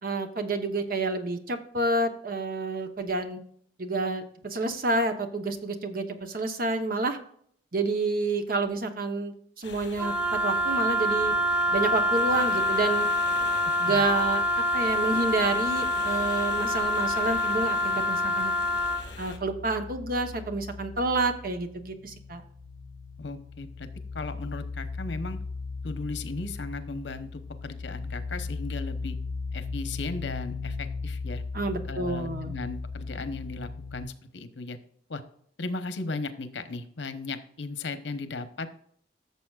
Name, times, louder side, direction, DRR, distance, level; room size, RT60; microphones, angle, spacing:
voice 1, 0.0-3.4 3.8-7.2 7.7-11.4 11.7-13.1 13.8-18.5 19.2-22.4 31.5-32.5, right 2 dB, 55° right, 7 dB, 1.0 m, -29 dB
sound 1, 9.6-19.4, left 4 dB, 70° left, 1.7 m, -43 dB
Wind instrument woodwind instrument, 10.0-19.1, equal, 5° right, 0.5 m, -26 dB
sound 2, 14.1-18.0 18.2-34.0, left 4 dB, 70° right, 3.6 m, -38 dB
voice 2, 23.2-23.9 24.1-25.4 25.8-29.2 29.5-31.4 31.8-34.8 35.1-35.2 35.6-38.8, left 3 dB, 90° left, 10 dB, 0.9 m, -36 dB
14.0 x 6.8 x 2.4 m, 0.64 s
head